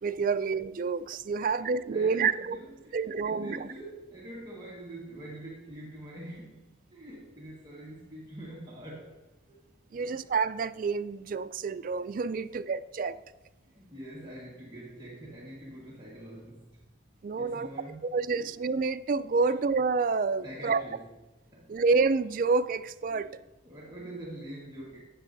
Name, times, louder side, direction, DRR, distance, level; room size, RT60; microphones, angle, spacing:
voice 1, 0.0-2.6 2.9-3.7 9.9-13.2 17.2-17.7 18.1-20.8 21.7-23.3, right 4 dB, 45° right, 11 dB, 0.3 m, -28 dB
voice 2, 1.4-9.2 9.5-9.6 9.9-10.2 12.4-12.6 13.7-16.8 17.4-18.5 20.4-21.1 21.5-21.8 23.1-23.3 23.6-25.0, right 1 dB, 20° right, -6 dB, 1.5 m, -45 dB
12.0 x 8.4 x 2.6 m, 1.0 s
head